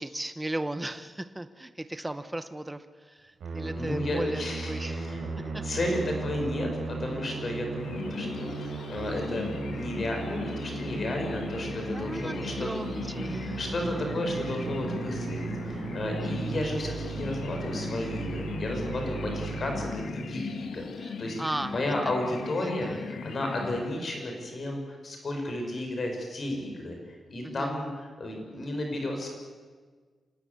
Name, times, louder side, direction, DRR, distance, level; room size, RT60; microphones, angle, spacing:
voice 1, 0.0-5.2 5.5-5.6 11.9-13.6 16.2-16.5 21.0-22.1 22.6-23.4 27.4-27.7, right 1 dB, 10° right, 10 dB, 0.9 m, -37 dB
Musical instrument, 3.4-20.5, right 3 dB, 75° right, 5.6 m, -36 dB
voice 2, 3.7-12.8 13.5-20.9 21.2-21.4 21.7-27.0 27.3-29.3, left 1 dB, 40° left, 2 dB, 5.8 m, -33 dB
sound 1, 7.8-24.4, left 5 dB, 85° left, 1.8 m, -39 dB
26.5 x 19.0 x 8.3 m, 1.5 s
wide cardioid pair, 180°, 0 cm